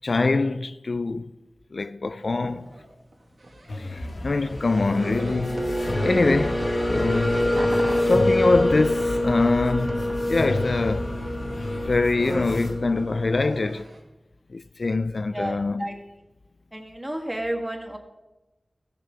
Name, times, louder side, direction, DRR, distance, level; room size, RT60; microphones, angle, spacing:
voice 1, 0.0-1.3 1.7-2.7 3.8-5.6 6.0-7.7 8.1-11.2 11.9-13.9 14.5-16.0, left 3 dB, 65° left, 0.3 m, -24 dB
sound 1, 2.4-4.1 4.4-6.6 6.9-14.0, right 1 dB, 80° right, 2.1 m, -39 dB
sound 2, 3.7-12.7, left 1 dB, 90° left, 1.4 m, -34 dB
sound 3, 4.4-13.5, left 1 dB, 15° left, 1.3 m, -26 dB
voice 2, 15.3-15.9 16.7-18.0, right 1 dB, 15° right, 1.6 m, -31 dB
16.0 x 6.7 x 4.9 m
wide cardioid pair, 80°, 0 cm